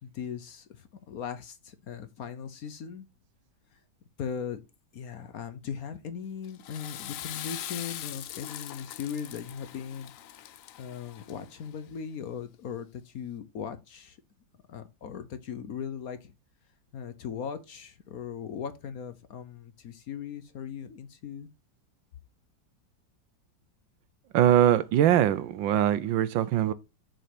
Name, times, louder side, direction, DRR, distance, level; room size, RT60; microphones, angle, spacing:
voice 1, 0.0-3.1 3.7-3.8 4.2-4.6 4.9-10.1 10.8-14.2 14.7-16.3 16.9-21.5, left 7 dB, 60° left, 1.1 m, -38 dB
Water / Toilet flush, 6.4-11.7, left 12 dB, 80° left, 0.7 m, -41 dB
voice 2, 24.3-26.7, right 11 dB, 80° right, 1.4 m, -22 dB
6.8 x 4.7 x 5.9 m
omnidirectional pair, 2.1 m